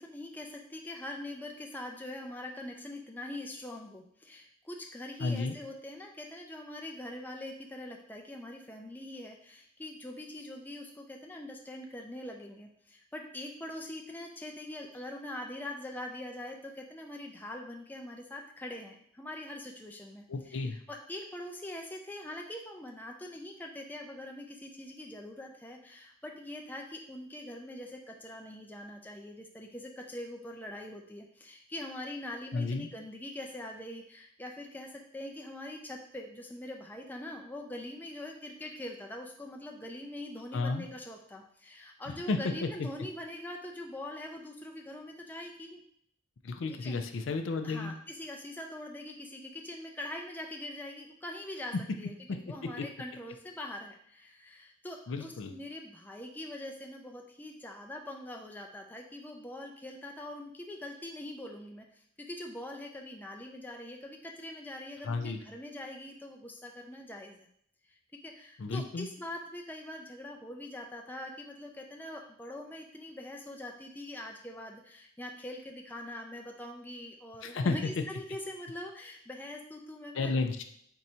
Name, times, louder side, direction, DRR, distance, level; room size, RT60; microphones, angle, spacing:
voice 1, 0.0-45.8 46.7-47.0 47.6-67.5 68.2-80.3, left 1 dB, 10° left, 1 dB, 0.4 m, -43 dB
voice 2, 5.2-5.6 20.3-20.8 32.5-32.9 40.5-40.9 42.1-42.7 46.4-47.9 52.3-52.4 52.8-52.9 55.1-55.5 65.0-65.4 68.6-69.1 77.4-77.7 80.1-80.6, left 3 dB, 70° left, 6 dB, 0.4 m, -32 dB
4.5 x 2.6 x 4.2 m, 0.68 s
head